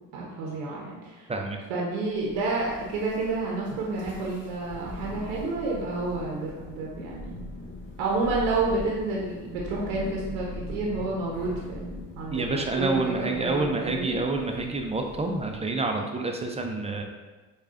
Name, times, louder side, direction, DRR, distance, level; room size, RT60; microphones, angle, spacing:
voice 1, 0.1-1.3 1.7-7.4 8.0-14.2, right 3 dB, 80° right, -3 dB, 0.7 m, -30 dB
Thunder, 2.1-15.7, left 2 dB, 30° left, 1.5 m, -41 dB
voice 2, 12.3-17.0, right 3 dB, 20° right, 3 dB, 0.4 m, -28 dB
4.8 x 2.3 x 2.5 m, 1.2 s
supercardioid pair, 65°, 37 cm